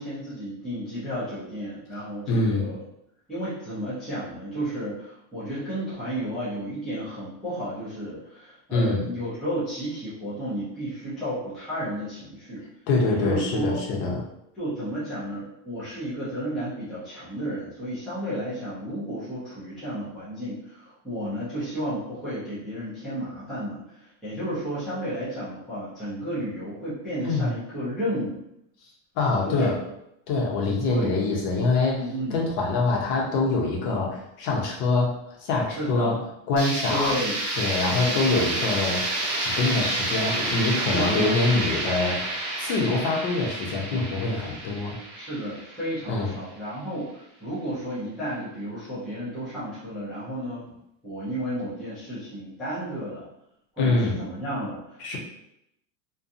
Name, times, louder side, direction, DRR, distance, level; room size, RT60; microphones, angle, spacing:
voice 1, 0.0-2.8 3.3-12.6 13.1-13.8 14.6-28.4 29.4-29.7 30.9-31.1 31.9-32.4 35.7-36.3 36.9-37.4 37.9-38.2 40.8-41.6 45.1-50.6 51.0-53.3 53.8-55.2, equal, ahead, -12 dB, 0.4 m, -32 dB
voice 2, 2.3-2.7 8.7-9.0 12.9-14.2 27.2-27.5 29.2-29.8 30.3-32.0 32.3-35.1 35.4-36.1 36.5-37.2 37.6-39.0 39.4-42.2 42.6-45.0 46.1-46.3 53.8-54.2 55.0-55.2, left 3 dB, 65° left, -1 dB, 0.9 m, -24 dB
sound 1, 36.6-46.3, right 2 dB, 35° right, 0.8 m, -29 dB
2.5 x 2.3 x 2.5 m, 0.80 s
supercardioid pair, 155°, 50 cm